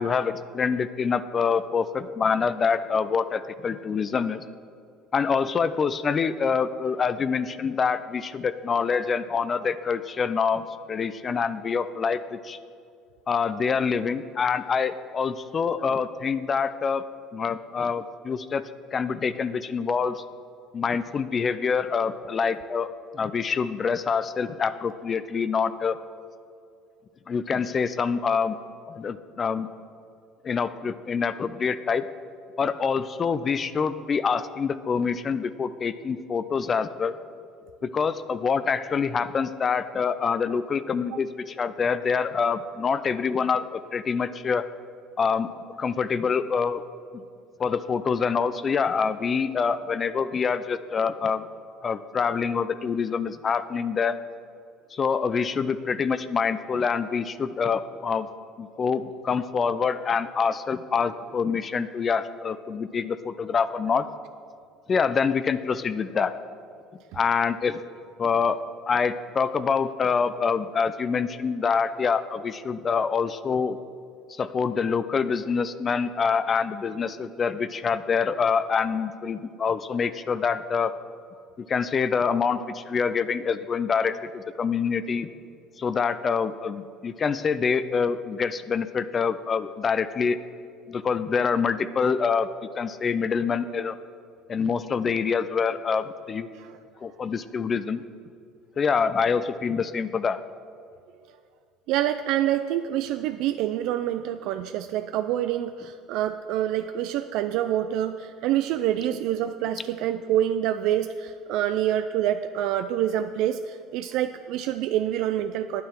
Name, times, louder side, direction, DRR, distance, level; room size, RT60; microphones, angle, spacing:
voice 1, 0.0-4.4 5.1-12.6 13.3-17.0 17.3-20.2 20.7-22.9 23.1-26.0 27.3-28.6 29.0-29.7 30.4-32.0 32.6-37.1 37.8-44.6 45.2-45.5 45.8-46.8 47.6-51.5 51.8-54.2 54.9-58.3 58.6-64.1 64.9-66.3 67.1-67.8 68.2-68.6 68.9-73.8 74.4-80.9 81.6-85.3 85.8-90.4 90.9-92.5 92.8-93.9 94.5-96.5 97.0-98.0 98.8-100.4, left 6 dB, 35° left, 13 dB, 0.4 m, -26 dB
voice 2, 101.9-115.8, right 11 dB, 70° right, 9 dB, 0.3 m, -26 dB
9.4 x 9.2 x 4.5 m, 2.4 s
hypercardioid pair, 80°, 0 cm